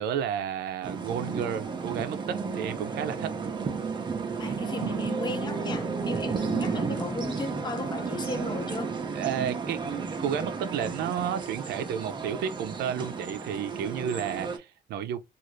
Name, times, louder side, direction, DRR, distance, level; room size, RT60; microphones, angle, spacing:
voice 1, 0.0-3.4 9.1-15.2, right 8 dB, 75° right, 0.5 m, -32 dB
sound 1, 0.8-14.6, right 5 dB, 25° right, 0.6 m, -33 dB
voice 2, 4.4-8.9, left 3 dB, 25° left, 0.7 m, -35 dB
2.5 x 2.4 x 3.0 m
cardioid pair, 110°, 17 cm